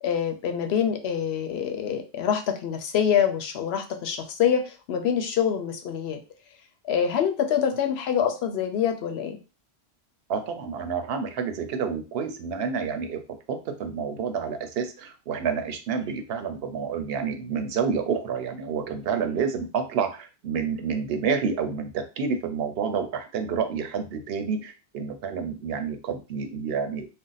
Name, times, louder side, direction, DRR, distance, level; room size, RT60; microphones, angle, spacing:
voice 1, 0.0-6.2 6.8-9.4, left 8 dB, 80° left, 5 dB, 0.8 m, -25 dB
voice 2, 10.3-13.2 13.5-27.1, right 6 dB, 75° right, 7 dB, 0.8 m, -29 dB
2.5 x 2.1 x 3.9 m, 0.31 s
omnidirectional pair, 1.1 m